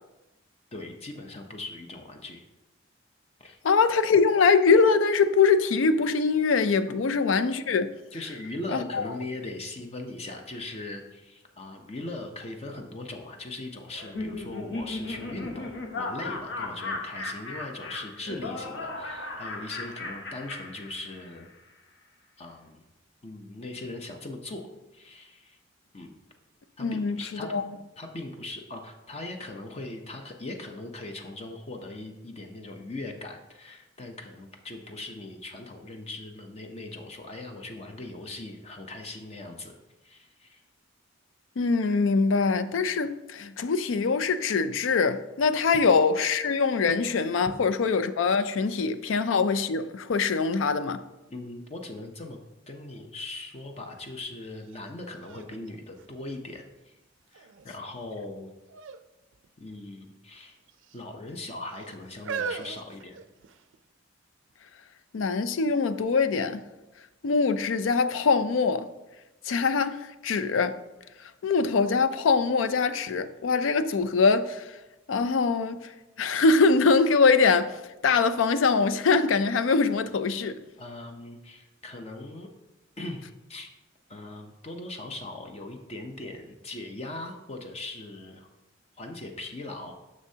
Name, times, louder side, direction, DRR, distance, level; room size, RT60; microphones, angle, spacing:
voice 1, 0.7-2.4 3.4-3.6 6.9-7.0 8.1-21.5 22.4-22.8 23.2-25.6 25.9-26.1 26.8-27.5 28.0-39.8 40.0-40.6 47.5-47.6 49.0-49.2 51.3-52.4 52.7-56.9 57.3-58.5 59.6-60.6 60.9-63.2 80.8-82.5 83.0-83.7 84.1-88.5 89.0-89.9, left 2 dB, 35° left, 0.6 m, -40 dB
voice 2, 3.6-7.9 8.7-9.0 26.8-27.6 41.6-51.0 65.1-66.6 67.2-68.9 69.5-70.8 71.4-74.6 75.1-75.9 76.2-77.8 78.0-80.6, left 4 dB, 85° left, 0.4 m, -23 dB
Laughter, 13.9-21.4, left 2 dB, 65° left, 1.1 m, -36 dB
sound 1, 54.7-54.8 55.2-56.8 57.3-57.8 58.7-59.0 59.3-59.5 60.4-61.0 61.7-63.8 64.5-64.6, right 6 dB, 70° right, 0.4 m, -38 dB
9.6 x 6.4 x 2.8 m
head